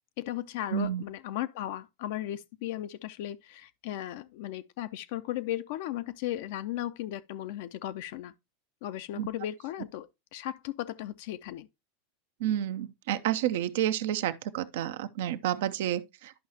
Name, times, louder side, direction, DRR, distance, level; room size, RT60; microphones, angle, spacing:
voice 1, 0.2-8.3 8.8-11.7, left 13 dB, 60° left, 0.5 m, -36 dB
voice 2, 0.7-1.0 9.2-9.3 12.4-16.5, right 11 dB, 65° right, 0.6 m, -30 dB
11.0 x 5.4 x 2.8 m
hypercardioid pair, 90°, 0 cm